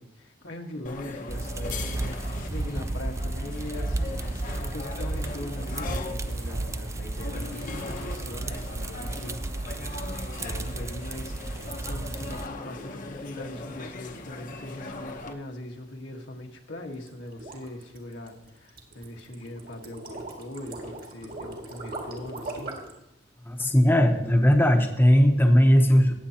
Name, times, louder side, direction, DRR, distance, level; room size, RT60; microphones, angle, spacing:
voice 1, 0.0-9.4 10.1-11.3 11.8-22.8, left 1 dB, 80° left, 1 dB, 1.5 m, -41 dB
sound 1, 0.9-15.3, left 3 dB, 45° left, 0.9 m, -40 dB
sound 2, 1.3-12.5, right 2 dB, 15° right, 0.3 m, -33 dB
sound 3, 16.9-23.0, right 2 dB, 50° right, 2.0 m, -39 dB
voice 2, 23.5-26.3, equal, 10° left, 3 dB, 0.9 m, -19 dB
18.5 x 7.6 x 2.9 m, 0.88 s
head